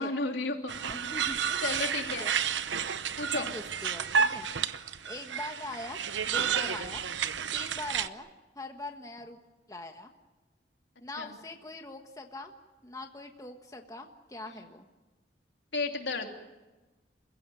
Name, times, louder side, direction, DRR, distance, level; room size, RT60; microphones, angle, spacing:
voice 1, 0.0-0.7 1.3-2.3 3.2-3.5 11.2-11.3 14.5-14.6 15.7-16.3, left 3 dB, 75° left, 3 dB, 3.0 m, -33 dB
sound 1, 0.7-8.1, right 7 dB, 80° right, 0.9 m, -31 dB
voice 2, 0.9-2.6 3.3-4.5 5.0-6.0 6.3-7.0 7.5-8.3 8.5-9.4 9.7-10.1 11.0-12.5 12.8-14.9, left 2 dB, 20° left, 4 dB, 1.4 m, -42 dB
29.0 x 16.0 x 9.2 m, 1.2 s
head